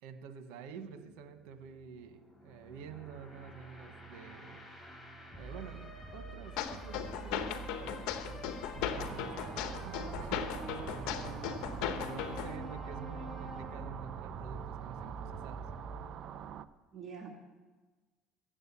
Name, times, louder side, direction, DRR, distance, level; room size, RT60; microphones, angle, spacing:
voice 1, 0.0-4.9 5.4-11.7 12.0-15.7, right 7 dB, 80° right, 8 dB, 1.3 m, -49 dB
sound 1, 0.9-16.0, right 2 dB, 10° left, 4.7 m, -47 dB
sound 2, 6.6-12.6, left 9 dB, 75° left, 1.2 m, -37 dB
sound 3, 8.9-16.7, right 9 dB, 55° right, 0.6 m, -45 dB
voice 2, 16.9-17.3, right 6 dB, 40° right, 1 dB, 2.3 m, -46 dB
15.5 x 8.0 x 8.4 m, 1.3 s
supercardioid pair, 90°, 0 cm